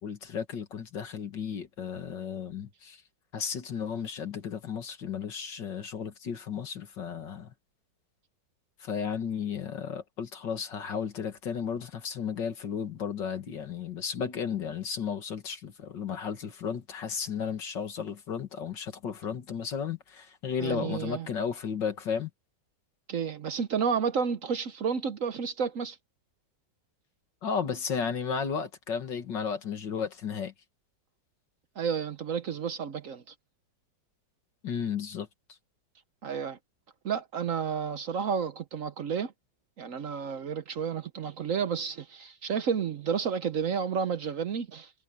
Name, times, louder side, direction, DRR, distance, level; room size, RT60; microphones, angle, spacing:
voice 1, 0.0-3.0 3.3-7.5 8.8-22.3 27.4-30.5 34.6-35.6, left 7 dB, 70° left, 2.4 m, -34 dB
voice 2, 20.6-21.3 23.1-26.0 31.8-33.2 36.2-36.6 37.0-39.3 39.8-44.9, right 6 dB, 55° right, 1.0 m, -31 dB
omnidirectional pair, 2.0 m